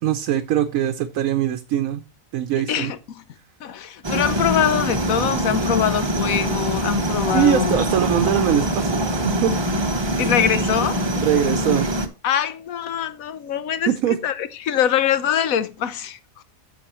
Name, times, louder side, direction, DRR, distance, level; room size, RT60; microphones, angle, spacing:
voice 1, 0.0-2.0 2.3-2.9 7.3-9.5 11.2-11.9 13.9-14.2, right 10 dB, 80° right, 1.1 m, -22 dB
voice 2, 2.7-3.2 3.6-7.8 10.2-11.0 12.2-13.9 14.2-16.2, left 9 dB, 80° left, 1.2 m, -23 dB
sound 1, 4.0-12.1, right 1 dB, 25° right, 0.7 m, -23 dB
10.0 x 7.3 x 3.0 m
omnidirectional pair, 1.4 m